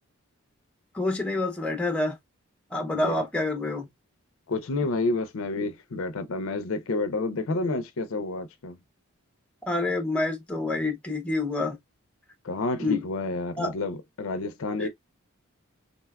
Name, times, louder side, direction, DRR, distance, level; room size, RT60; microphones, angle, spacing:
voice 1, 0.9-2.2 2.7-3.9 9.7-11.8 12.8-13.0 13.6-13.7 14.8-14.9, left 2 dB, 5° left, 0.6 m, -27 dB
voice 2, 4.5-8.8 12.4-14.9, left 3 dB, 65° left, 0.5 m, -29 dB
3.9 x 2.2 x 2.2 m
head